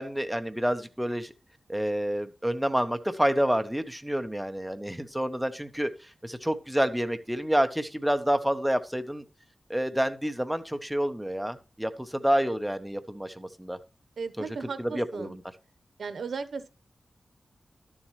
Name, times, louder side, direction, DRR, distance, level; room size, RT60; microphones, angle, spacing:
voice 1, 0.0-1.3 1.7-9.2 9.7-13.8 14.4-14.5 14.8-15.4, equal, 5° right, 8 dB, 0.8 m, -28 dB
voice 2, 14.2-15.4 16.0-16.7, right 5 dB, 80° right, 12 dB, 0.9 m, -36 dB
12.0 x 7.3 x 3.2 m, 0.32 s
wide cardioid pair, 130°, 0 cm